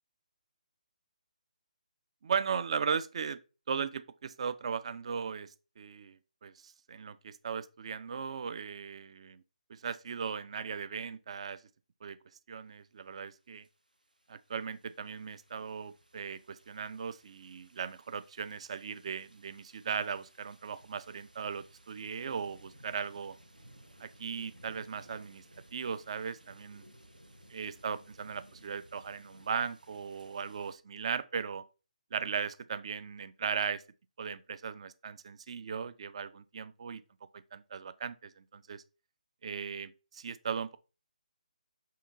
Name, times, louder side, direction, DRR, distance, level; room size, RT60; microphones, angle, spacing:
voice 1, 2.2-3.4 3.7-9.4 9.7-11.6 12.0-12.2 12.5-13.6 14.3-23.4 24.0-25.4 25.7-26.8 27.5-31.6 32.1-33.8 34.2-37.0 37.3-38.8 39.4-40.8, right 6 dB, 45° right, 0.3 m, -37 dB
sound 1, 13.6-30.8, right 1 dB, 90° right, 0.7 m, -59 dB
5.5 x 2.3 x 3.7 m
figure-of-eight pair, 145°, 4 cm